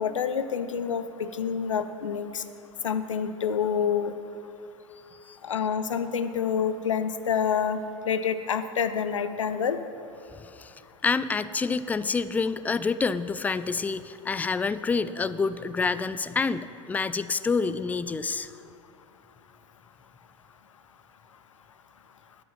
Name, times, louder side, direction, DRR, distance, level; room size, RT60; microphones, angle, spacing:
voice 1, 0.0-2.4 2.8-4.1 5.4-7.8 8.0-9.8, left 7 dB, 75° left, 11 dB, 0.6 m, -27 dB
voice 2, 10.4-10.7 11.0-18.5, left 4 dB, 10° left, 15 dB, 0.3 m, -28 dB
10.5 x 8.6 x 5.6 m, 2.6 s
figure-of-eight pair, 85°, 16 cm